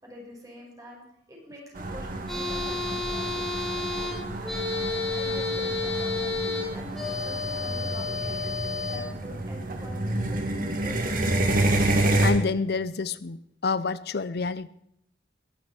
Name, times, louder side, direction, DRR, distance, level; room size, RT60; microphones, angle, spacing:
voice 1, 0.0-4.6 5.1-6.3 6.7-8.4 8.8-11.2, equal, 20° right, 5.8 m, -45 dB
sound 1, 1.8-12.3, right 1 dB, 55° right, 2.4 m, -29 dB
sound 2, 2.3-9.0, left 3 dB, ahead, 6.3 m, -31 dB
voice 2, 12.2-14.7, left 4 dB, 65° left, 0.6 m, -28 dB
21.0 x 12.0 x 4.4 m
head